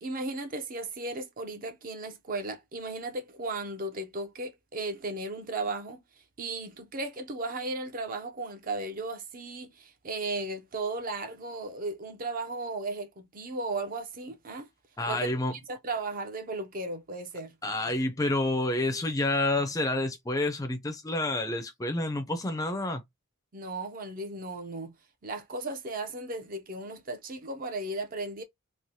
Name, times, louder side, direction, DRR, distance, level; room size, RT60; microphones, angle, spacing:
voice 1, 0.0-6.0 6.4-14.7 15.1-17.5 23.5-24.9 25.2-28.4, right 2 dB, 40° right, 0.5 m, -35 dB
voice 2, 15.0-15.5 17.6-23.0, left 2 dB, 15° left, 0.4 m, -29 dB
3.1 x 2.0 x 2.7 m
head